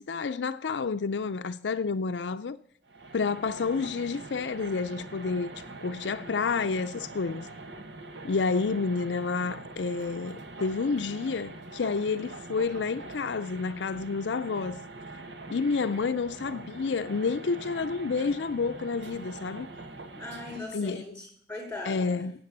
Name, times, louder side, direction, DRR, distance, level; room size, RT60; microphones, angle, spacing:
voice 1, 0.0-2.6 3.1-5.5 5.8-7.5 8.2-14.8 15.5-19.7 20.7-21.2 21.9-22.5, left 4 dB, 80° left, 0.5 m, -29 dB
sound 1, 2.9-20.6, right 2 dB, 75° right, 1.4 m, -43 dB
voice 2, 20.2-22.2, left 2 dB, 10° left, 5.6 m, -39 dB
12.5 x 8.3 x 8.6 m
head